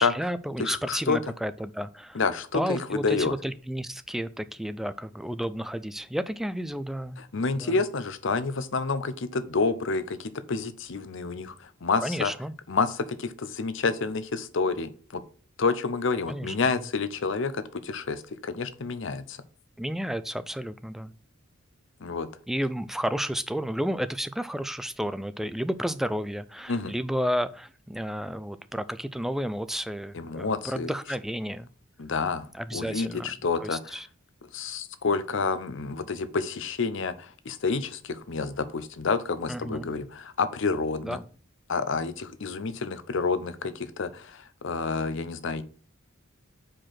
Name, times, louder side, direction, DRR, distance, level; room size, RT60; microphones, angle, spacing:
voice 1, 0.0-2.2 2.5-7.2 7.6-7.8 12.0-12.5 16.3-16.6 19.8-21.1 22.5-31.7 32.5-34.1 39.5-39.9 41.0-41.2, equal, ahead, 12 dB, 0.3 m, -32 dB
voice 2, 0.6-1.2 2.1-3.3 7.3-12.3 12.7-15.2 15.6-19.4 22.0-22.3 26.7-26.9 30.1-30.9 32.0-34.0 34.5-41.2 41.7-45.6, left 4 dB, 65° left, 13 dB, 0.7 m, -29 dB
5.0 x 4.5 x 5.7 m, 0.43 s
head